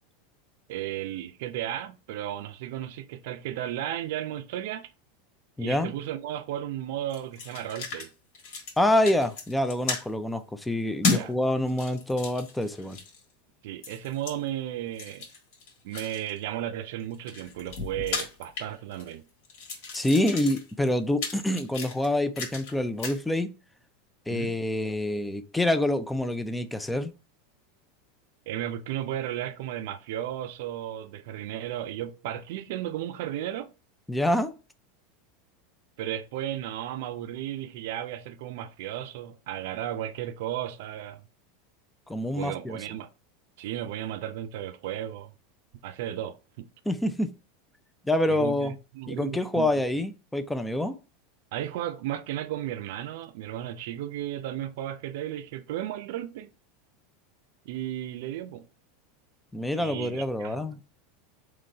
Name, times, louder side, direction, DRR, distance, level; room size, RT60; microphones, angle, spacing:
voice 1, 0.7-4.9 5.6-8.1 11.1-11.3 13.6-15.3 15.8-19.2 24.3-24.6 28.5-33.7 36.0-41.2 42.3-43.1 43.6-45.3 45.8-46.7 48.3-49.7 51.5-56.5 57.6-58.6 59.8-60.7, right 12 dB, 65° right, 0.5 m, -34 dB
voice 2, 5.6-5.9 8.8-13.0 19.9-23.5 24.3-27.1 34.1-34.5 42.1-42.8 46.9-47.3 48.0-48.7 49.1-51.0 59.5-60.8, left 1 dB, 5° left, 0.4 m, -26 dB
sound 1, 7.1-8.1 8.3-8.8 9.1-10.0 11.0-11.3 11.7-13.2 13.8-14.3 14.9-16.4 17.0-19.1 19.4-22.7 23.0-23.2, left 4 dB, 65° left, 1.5 m, -34 dB
3.9 x 3.1 x 4.3 m
supercardioid pair, 155°, 0 cm